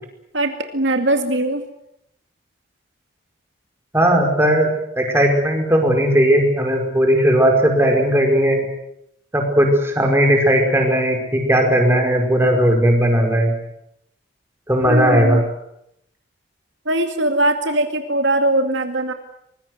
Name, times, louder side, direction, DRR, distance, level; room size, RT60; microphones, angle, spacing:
voice 1, 0.3-1.7 14.9-15.4 16.9-19.1, right 1 dB, 70° right, 6 dB, 2.3 m, -20 dB
voice 2, 3.9-8.6 9.3-13.5 14.7-15.4, equal, 15° right, 2 dB, 5.1 m, -17 dB
24.5 x 21.0 x 8.0 m, 0.78 s
head